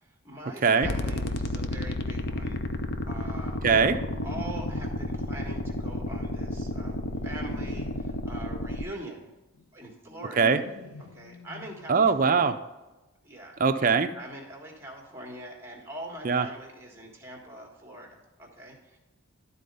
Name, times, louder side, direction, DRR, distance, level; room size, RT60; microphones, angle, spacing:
voice 1, 0.2-2.6 3.0-3.6 4.2-7.0 7.2-9.3 9.7-10.5 11.0-12.5 13.2-13.5 14.1-19.0, right 1 dB, 10° right, 0 dB, 1.5 m, -43 dB
sound 1, 0.8-8.8, left 1 dB, 50° left, 0.5 m, -32 dB
sound 2, 2.4-2.6 4.0-5.1 5.9-8.2 9.5-9.6 9.9-12.2 12.4-12.5 12.8-12.9, left 1 dB, 75° left, 1.1 m, -45 dB
voice 2, 3.6-4.0 10.4-10.6 11.9-12.6 13.6-14.1 16.2-16.5, right 5 dB, 40° right, 9 dB, 0.5 m, -21 dB
11.5 x 4.2 x 5.3 m, 1.0 s
head